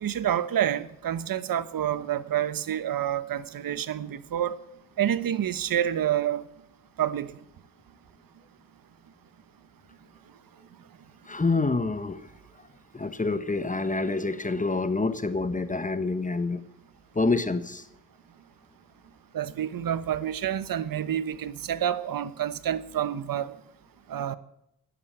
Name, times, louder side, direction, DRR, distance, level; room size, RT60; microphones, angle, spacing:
voice 1, 0.0-4.6 5.0-6.4 7.0-7.3 19.3-23.5 24.1-24.4, right 10 dB, 70° right, 15 dB, 1.1 m, -28 dB
voice 2, 11.2-12.3 12.9-16.6 17.1-17.9, left 3 dB, 20° left, 12 dB, 1.2 m, -27 dB
13.5 x 11.0 x 8.6 m, 0.80 s
cardioid pair, 70°, 35 cm